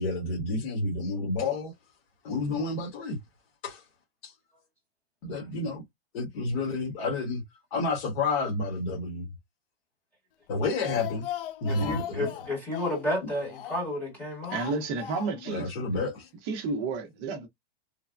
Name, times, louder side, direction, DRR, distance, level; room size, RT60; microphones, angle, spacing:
voice 1, 0.0-1.7 2.2-3.2 3.6-3.8 4.2-4.3 5.2-5.8 6.1-7.4 7.7-9.3 10.5-11.3 11.6-12.3 13.2-13.3 15.5-16.3, left 3 dB, 45° left, 1.2 m, -30 dB
Speech, 10.5-14.0 14.4-15.6 15.8-15.9 16.2-16.3, left 12 dB, 60° left, 0.5 m, -38 dB
voice 2, 11.7-14.6, left 1 dB, 5° left, 0.9 m, -31 dB
voice 3, 14.5-15.7 16.4-17.5, right 4 dB, 25° right, 0.6 m, -31 dB
3.2 x 2.1 x 2.4 m
supercardioid pair, 165°, 31 cm